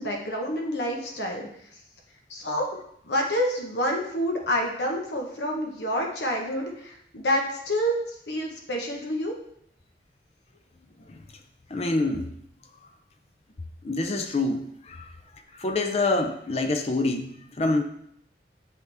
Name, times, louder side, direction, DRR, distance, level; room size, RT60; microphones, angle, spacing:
voice 1, 0.0-1.5 2.3-2.7 3.1-9.3, equal, 80° left, 1 dB, 1.2 m, -28 dB
voice 2, 11.7-12.4 13.8-15.1 15.5-17.8, left 2 dB, 35° left, 5 dB, 0.5 m, -26 dB
7.9 x 5.7 x 3.5 m, 0.71 s
head